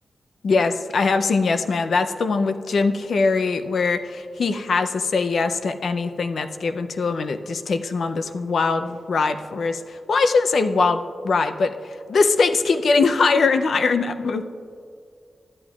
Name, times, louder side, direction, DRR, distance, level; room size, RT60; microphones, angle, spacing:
voice 1, 0.4-11.8 12.1-14.4, left 4 dB, 70° left, 8 dB, 0.5 m, -21 dB
13.0 x 10.5 x 2.4 m, 2.3 s
wide cardioid pair, 135°, 0 cm